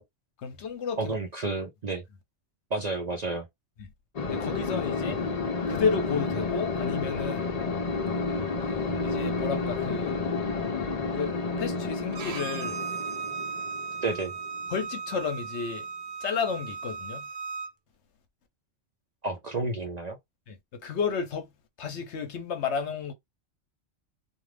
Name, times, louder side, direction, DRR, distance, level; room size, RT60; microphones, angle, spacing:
voice 1, 0.4-1.1 3.8-3.9 4.3-5.2 5.7-7.5 8.6-8.7 9.0-10.2 11.1-12.8 14.7-15.9 16.2-17.3 20.5-21.5 21.8-23.1, left 6 dB, 65° left, 1.0 m, -32 dB
voice 2, 1.0-2.0 2.7-3.5 14.0-14.3 19.2-20.2, right 3 dB, 50° right, 0.5 m, -30 dB
sound 1, 4.2-15.2, left 4 dB, 40° left, 0.6 m, -31 dB
Bowed string instrument, 12.1-17.7, right 6 dB, 80° right, 0.9 m, -36 dB
2.5 x 2.4 x 3.2 m
omnidirectional pair, 1.3 m